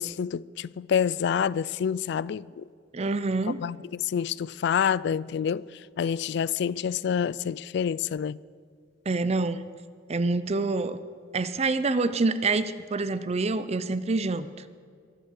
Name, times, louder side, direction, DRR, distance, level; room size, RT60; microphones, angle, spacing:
voice 1, 0.0-2.6 3.6-5.7 6.0-8.4, left 7 dB, 60° left, 0.3 m, -27 dB
voice 2, 2.9-3.6 9.1-9.7 10.1-11.0 11.3-14.5, right 3 dB, 35° right, 0.5 m, -26 dB
22.5 x 8.0 x 6.5 m
head